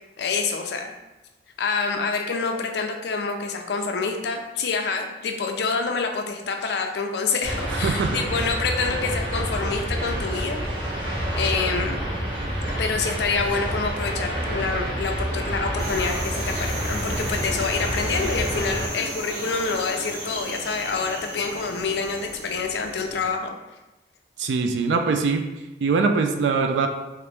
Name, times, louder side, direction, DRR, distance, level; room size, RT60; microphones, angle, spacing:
voice 1, 0.2-0.9 1.6-10.6 10.9-11.0 11.3-12.0 12.8-23.5, left 4 dB, 70° left, 4 dB, 0.4 m, -27 dB
sound 1, 7.4-18.9, equal, 30° right, 0.8 m, -28 dB
voice 2, 7.7-8.2 24.4-25.4 25.8-26.9, right 4 dB, 85° right, 5 dB, 0.3 m, -22 dB
sound 2, 15.8-23.3, right 1 dB, 60° right, 1.0 m, -35 dB
2.9 x 2.5 x 3.2 m, 1.0 s
head